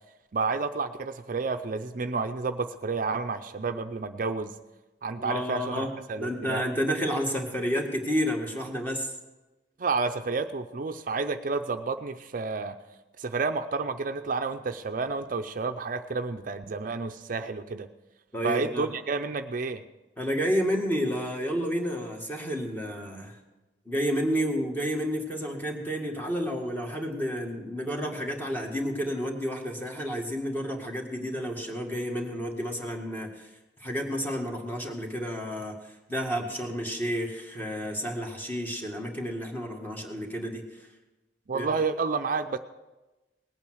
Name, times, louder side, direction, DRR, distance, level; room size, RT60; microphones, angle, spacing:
voice 1, 0.3-4.5 5.0-6.6 9.8-12.7 13.2-17.9 18.4-19.8 41.5-42.6, right 4 dB, 50° right, 8 dB, 0.6 m, -30 dB
voice 2, 5.2-5.9 6.2-9.1 18.3-18.9 20.2-23.4 23.9-33.5 33.8-40.9 41.5-41.7, equal, 10° left, 2 dB, 1.9 m, -30 dB
19.0 x 8.8 x 6.3 m, 1.1 s
head